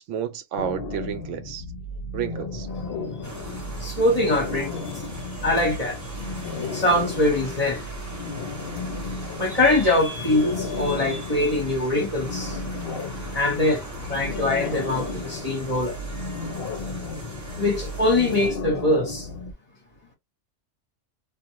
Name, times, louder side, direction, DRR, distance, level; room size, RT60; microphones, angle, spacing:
voice 1, 0.0-1.6 2.1-2.7, right 9 dB, 80° right, 0.9 m, -31 dB
sound 1, 0.6-19.5, left 3 dB, 60° left, 0.8 m, -34 dB
sound 2, 3.2-18.5, right 1 dB, 15° right, 1.0 m, -39 dB
voice 2, 3.8-4.9 5.4-6.0 6.6-7.8 9.4-12.6 13.3-16.0 17.6-19.3, left 2 dB, 30° left, 1.3 m, -23 dB
2.5 x 2.5 x 2.8 m
omnidirectional pair, 1.3 m